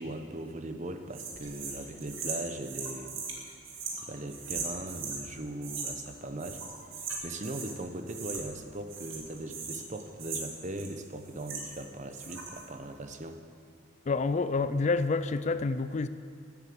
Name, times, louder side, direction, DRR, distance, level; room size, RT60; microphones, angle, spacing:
voice 1, 0.0-3.2 4.0-6.6 7.2-13.4, right 1 dB, 40° right, 7 dB, 0.9 m, -39 dB
sound 1, 1.1-5.2 5.6-6.1 6.4-7.8 8.1-8.6 8.9-11.8 12.1-12.7, right 4 dB, 80° right, 2.5 m, -39 dB
voice 2, 14.1-16.1, left 3 dB, 35° left, 13 dB, 0.4 m, -28 dB
13.5 x 8.8 x 7.8 m, 2.3 s
head